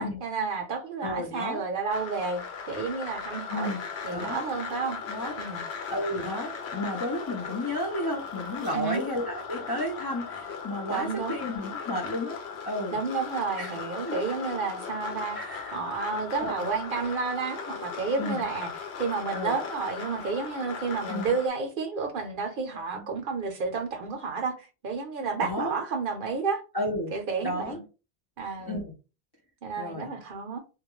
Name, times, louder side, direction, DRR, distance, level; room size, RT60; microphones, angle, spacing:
voice 1, 0.0-3.7 4.0-5.0 5.4-5.6 8.7-9.0 10.9-11.4 12.9-15.4 15.7-18.7 19.0-26.6 27.1-27.8 28.4-28.8 29.6-30.6, right 4 dB, 60° right, 0.7 m, -31 dB
voice 2, 1.0-1.6 3.5-3.8 4.1-4.4 5.1-5.4 5.9-12.4 12.7-13.0 13.6-13.8 14.0-14.2 15.3-15.8 16.4-16.7 18.2-18.4 19.3-19.5 21.1-21.4 22.9-23.1 25.4-25.7 26.7-27.1 27.4-27.8 28.7-28.9 29.8-30.1, left 1 dB, 35° left, 0.3 m, -32 dB
sound 1, 1.9-21.5, left 6 dB, 75° left, 0.9 m, -38 dB
2.2 x 2.2 x 2.9 m
omnidirectional pair, 1.1 m